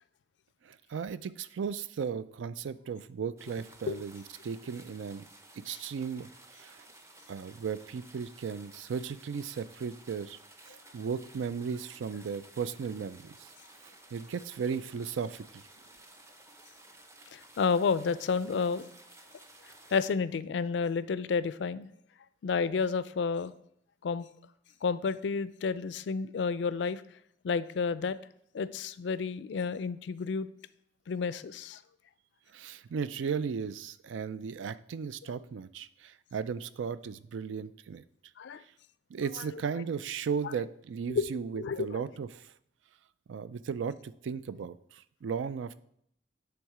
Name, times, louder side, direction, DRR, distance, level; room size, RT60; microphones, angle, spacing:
voice 1, 0.6-5.3 5.6-6.8 7.3-10.4 10.6-13.5 14.1-15.6 32.5-38.0 39.1-42.5 43.3-45.8, right 6 dB, 90° right, 15 dB, 0.4 m, -36 dB
sound 1, 3.4-20.1, right 2 dB, 15° right, 0.6 m, -55 dB
voice 2, 17.3-18.9 19.9-21.9 22.4-23.5 24.0-24.3 24.8-27.0 27.4-28.2 28.5-30.5 31.1-31.8 38.4-38.6 41.1-41.2 41.6-42.0, left 5 dB, 70° left, 15 dB, 0.4 m, -30 dB
9.3 x 3.6 x 4.8 m, 0.71 s
head